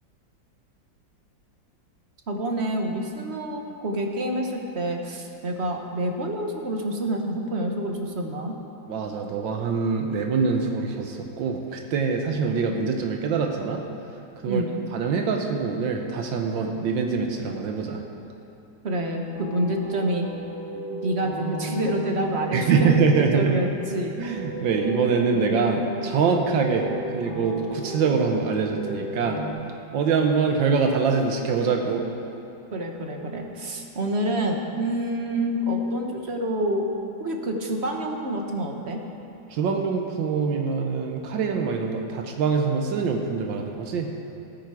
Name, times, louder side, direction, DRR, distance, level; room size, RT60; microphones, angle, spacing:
voice 1, 2.3-8.6 14.5-14.7 18.8-20.3 20.9-24.2 32.7-36.9 37.2-39.0, right 1 dB, 40° right, 2 dB, 1.2 m, -27 dB
voice 2, 8.9-13.8 14.4-18.0 22.5-23.5 24.2-26.9 27.1-29.4 29.9-32.0 39.5-44.1, right 5 dB, 80° right, 3 dB, 1.6 m, -24 dB
sound 1, 19.3-29.5, equal, 10° left, 2.4 m, -34 dB
16.5 x 9.1 x 4.8 m, 2.8 s
omnidirectional pair, 2.0 m